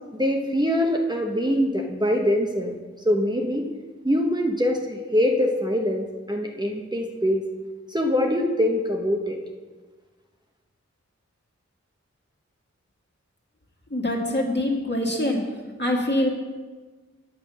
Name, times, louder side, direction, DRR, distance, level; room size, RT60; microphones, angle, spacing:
voice 1, 0.1-2.8 3.0-3.7 4.0-7.4 7.9-9.4, equal, 15° right, 0 dB, 1.0 m, -23 dB
voice 2, 13.9-15.4 15.8-16.3, left 1 dB, 35° left, -1 dB, 2.0 m, -24 dB
8.6 x 7.4 x 6.1 m, 1.4 s
wide cardioid pair, 60°, 29 cm